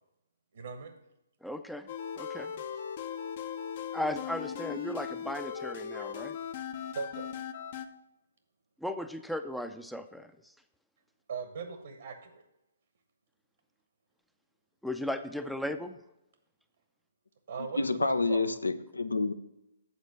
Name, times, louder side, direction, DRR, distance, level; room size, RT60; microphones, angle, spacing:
voice 1, 0.5-0.9 5.9-6.1 6.9-7.3 11.3-12.4 17.5-18.4, right 5 dB, 65° right, 7 dB, 1.0 m, -39 dB
voice 2, 1.4-1.9 2.2-2.5 3.9-6.4 8.8-10.3 14.8-16.0, left 1 dB, ahead, 9 dB, 0.4 m, -36 dB
sound 1, 1.9-7.9, left 8 dB, 50° left, 0.7 m, -38 dB
voice 3, 17.8-19.3, left 3 dB, 90° left, 13 dB, 0.6 m, -28 dB
8.2 x 4.3 x 6.6 m, 0.92 s
figure-of-eight pair, 135°, 0 cm